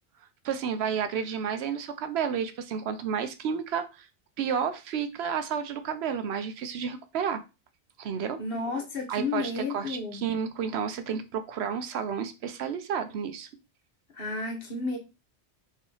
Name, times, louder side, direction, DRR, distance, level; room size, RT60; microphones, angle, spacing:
voice 1, 0.4-4.1 4.4-7.4 8.0-8.4 9.1-13.5, right 7 dB, 75° right, 0.8 m, -31 dB
voice 2, 8.4-10.2 14.1-15.0, left 3 dB, 60° left, 1.2 m, -32 dB
3.2 x 2.9 x 3.8 m
omnidirectional pair, 1.1 m